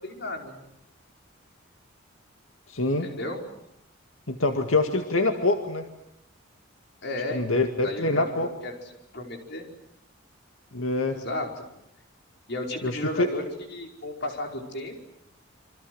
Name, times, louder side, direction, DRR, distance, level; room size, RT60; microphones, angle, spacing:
voice 1, 0.0-0.6 3.0-3.4 7.0-7.5 7.8-8.7 9.1-9.7 11.1-11.6 12.5-13.4 13.7-15.0, left 1 dB, 60° left, 3 dB, 5.1 m, -33 dB
voice 2, 2.7-3.1 4.3-5.9 7.3-8.5 10.7-11.2 12.8-13.3, left 2 dB, 90° left, 5 dB, 2.1 m, -25 dB
28.0 x 25.0 x 8.0 m, 0.80 s
head